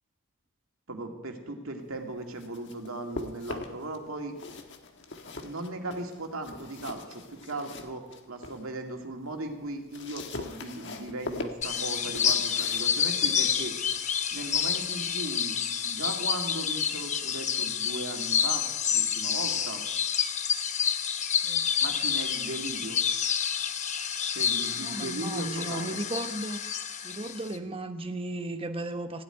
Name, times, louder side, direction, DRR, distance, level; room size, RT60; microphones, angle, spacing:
voice 1, 0.9-4.3 5.4-13.8 14.3-15.6 15.8-18.7 18.9-19.8 21.8-23.0 24.3-26.0, right 2 dB, 75° right, 3 dB, 2.2 m, -37 dB
sound 1, 2.1-4.0 4.3-8.7 9.1-15.7, left 2 dB, 55° left, 1.5 m, -42 dB
sound 2, 11.6-27.6, left 8 dB, 35° left, 0.8 m, -29 dB
voice 2, 24.8-26.6 27.0-29.2, right 2 dB, 25° right, 7 dB, 1.0 m, -35 dB
16.5 x 8.3 x 9.9 m, 1.1 s
head